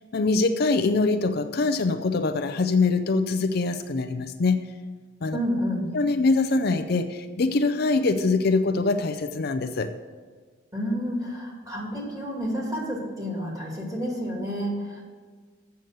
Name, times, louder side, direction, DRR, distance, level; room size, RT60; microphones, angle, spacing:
voice 1, 0.1-4.6 5.2-5.4 5.9-9.9, left 3 dB, 50° left, 8 dB, 0.5 m, -23 dB
voice 2, 5.3-5.9 10.7-15.0, equal, 20° right, -2 dB, 2.6 m, -30 dB
7.8 x 7.0 x 7.7 m, 1.5 s
head